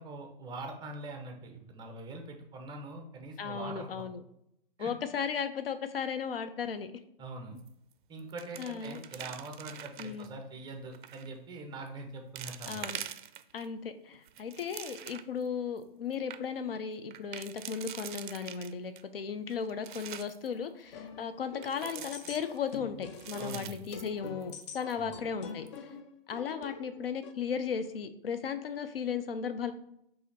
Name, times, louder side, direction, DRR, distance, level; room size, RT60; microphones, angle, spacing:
voice 1, 0.0-4.0 4.8-4.9 7.2-7.6 8.1-12.9 23.4-23.8 25.0-25.1, right 2 dB, 15° right, 3 dB, 0.7 m, -43 dB
voice 2, 3.4-4.2 4.8-6.9 8.6-9.0 10.0-10.3 12.7-13.0 13.5-25.7 26.3-29.7, left 6 dB, 75° left, 10 dB, 0.6 m, -36 dB
sound 1, 7.6-7.9 8.2-10.3 10.9-11.3 11.9-12.0 12.4-13.7 14.1-15.4 15.8-15.9 16.1-16.4 17.1-19.0 19.5-20.5 21.6-22.8 23.1-24.6 24.9-25.0 25.5-25.8, right 10 dB, 60° right, 0.4 m, -44 dB
sound 2, 20.9-27.3, left 6 dB, 30° left, 0.4 m, -45 dB
3.9 x 2.8 x 4.1 m, 0.77 s
hypercardioid pair, 120°, 29 cm